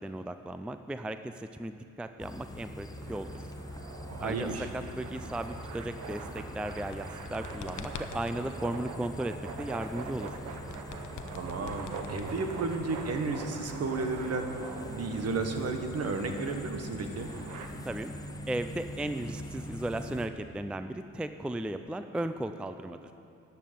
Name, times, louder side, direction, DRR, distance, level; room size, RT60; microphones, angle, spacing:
voice 1, 0.0-3.3 4.2-9.3 9.6-10.3 17.8-18.1 18.5-23.0, right 1 dB, 5° right, 9 dB, 0.4 m, -36 dB
sound 1, 2.2-20.3, left 1 dB, 10° left, 0.9 m, -43 dB
sound 2, 3.0-17.7, right 5 dB, 85° right, 1.2 m, -44 dB
voice 2, 4.1-4.7 11.4-14.6 14.9-17.3, right 3 dB, 55° right, 5 dB, 1.5 m, -33 dB
sound 3, 6.7-8.4 10.2-12.8, left 8 dB, 80° left, 0.8 m, -45 dB
12.5 x 7.5 x 9.1 m, 2.6 s
cardioid pair, 90°, 30 cm